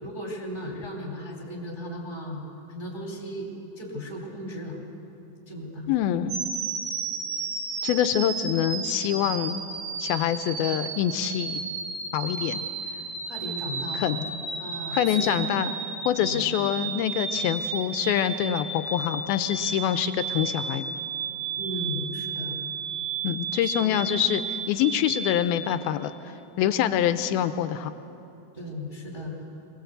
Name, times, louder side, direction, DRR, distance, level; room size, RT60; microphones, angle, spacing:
voice 1, 0.0-2.4 2.7-3.5 3.7-4.8 5.5-5.9 13.2-15.5 16.1-16.5 21.6-22.6 23.6-24.3 28.5-29.4, left 1 dB, 10° right, -1 dB, 2.8 m, -36 dB
voice 2, 5.9-6.4 7.8-9.6 10.0-11.6 12.1-12.6 13.9-14.3 14.9-15.7 16.1-21.0 23.2-26.1 26.6-27.9, left 10 dB, 80° left, 10 dB, 2.4 m, -25 dB
sound 1, 6.3-25.7, right 5 dB, 75° right, 3.9 m, -33 dB
23.0 x 19.5 x 8.0 m, 2.9 s
omnidirectional pair, 4.6 m